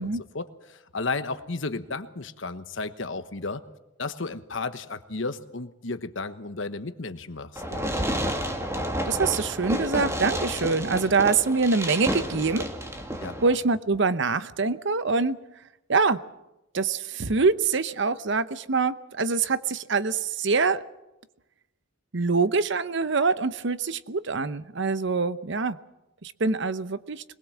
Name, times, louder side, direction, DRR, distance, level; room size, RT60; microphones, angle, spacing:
voice 1, 0.0-3.6 4.0-8.0 13.2-13.4, left 3 dB, 65° left, 11 dB, 1.2 m, -33 dB
Fireworks, 7.6-13.6, equal, 15° right, 2.1 m, -30 dB
voice 2, 9.1-12.7 13.4-15.4 15.9-16.2 16.7-20.8 22.1-25.8 26.2-27.2, right 4 dB, 60° right, 14 dB, 0.8 m, -25 dB
22.5 x 20.5 x 7.4 m, 0.94 s
head